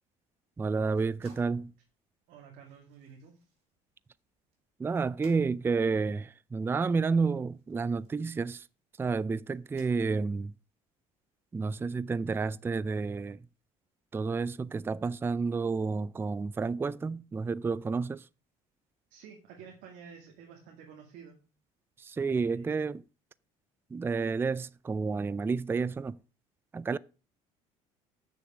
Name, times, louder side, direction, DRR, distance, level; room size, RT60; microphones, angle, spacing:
voice 1, 0.6-1.7 4.8-8.6 9.0-10.5 11.5-13.4 14.1-18.2 22.0-23.0 23.9-26.2 26.7-27.0, right 4 dB, 15° right, 0.4 m, -30 dB
sound 1, 0.9-8.8 9.5-10.5, right 2 dB, 45° right, 4.9 m, -63 dB
voice 2, 2.3-3.5 19.1-21.4 22.2-22.9, right 7 dB, 70° right, 2.2 m, -51 dB
8.3 x 6.9 x 5.0 m
supercardioid pair, 90°, 15 cm